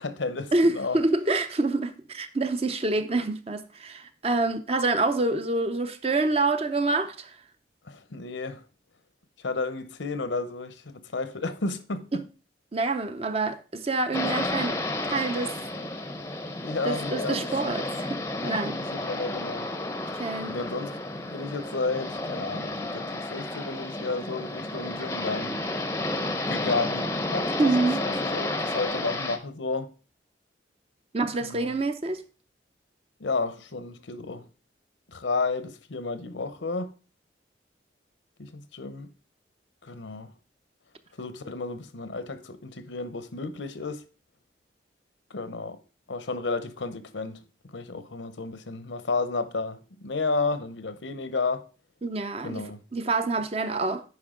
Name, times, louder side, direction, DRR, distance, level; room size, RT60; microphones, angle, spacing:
voice 1, 0.0-1.0 7.9-8.6 9.4-12.2 16.6-17.8 18.4-19.7 20.5-25.6 26.5-29.9 31.4-31.8 33.2-34.4 35.1-36.9 38.4-39.1 39.8-40.3 41.2-44.0 45.3-45.8 46.1-47.4 47.7-51.6 52.4-52.8, left 3 dB, 85° left, 0.9 m, -32 dB
voice 2, 0.5-7.4 12.1-12.2 12.7-15.6 16.8-18.8 20.2-20.5 27.6-28.0 31.1-32.2 52.0-52.6 52.9-54.0, right 3 dB, 35° right, 0.7 m, -27 dB
sound 1, 14.1-29.4, left 2 dB, 15° left, 0.6 m, -31 dB
9.4 x 5.4 x 3.8 m
head